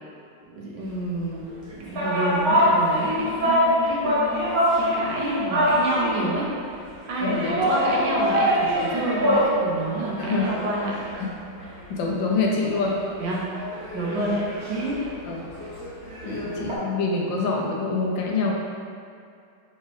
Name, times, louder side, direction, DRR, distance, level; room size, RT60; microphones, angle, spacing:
voice 1, 0.4-1.5 1.7-4.4 4.7-6.6 7.1-11.1 12.1-12.2 13.2-13.6 13.9-15.2 16.2-16.4, right 1 dB, 70° right, -4 dB, 1.3 m, -29 dB
sound 1, 1.5-6.3 7.2-9.6 9.9-11.8 12.2-12.3 12.6-16.8, equal, 55° right, 1.3 m, -24 dB
voice 2, 7.2-7.9 10.2-10.6 11.9-13.0 14.2-14.3 15.3-15.4 16.3-18.5, left 3 dB, 75° left, -1 dB, 1.3 m, -26 dB
5.6 x 3.1 x 3.1 m, 2.4 s
omnidirectional pair, 2.2 m